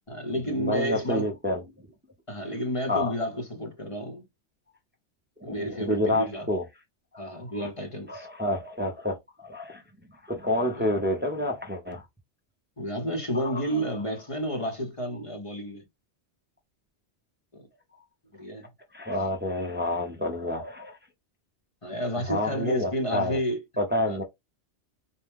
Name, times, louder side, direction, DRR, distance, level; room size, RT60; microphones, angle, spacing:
voice 1, 0.1-1.3 2.3-4.2 5.4-6.5 7.2-8.3 10.7-10.9 12.8-15.8 17.5-17.7 18.3-18.7 21.8-23.6 24.0-24.2, equal, 30° left, 1.0 m, -31 dB
voice 2, 0.6-1.6 2.9-3.1 5.4-6.6 7.5-7.7 8.1-9.8 10.2-12.0 13.3-13.6 18.9-21.0 22.3-23.4 23.8-24.2, left 1 dB, 10° right, 0.7 m, -28 dB
4.4 x 2.2 x 3.5 m
omnidirectional pair, 1.1 m